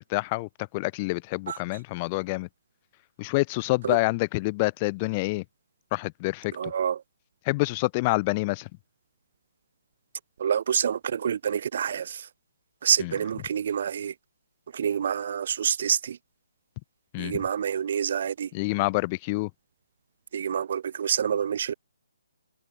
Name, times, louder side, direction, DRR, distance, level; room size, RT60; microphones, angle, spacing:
voice 1, 0.0-2.5 3.2-5.4 5.9-6.7 7.4-8.7 13.0-13.1 17.1-17.4 18.5-19.5, left 24 dB, 25° left, 0.5 m, -27 dB
voice 2, 6.5-7.0 10.4-12.3 12.8-14.1 14.7-16.2 17.2-18.5 20.3-21.7, right 8 dB, 45° right, 1.3 m, -27 dB
figure-of-eight pair, 135°, 0 cm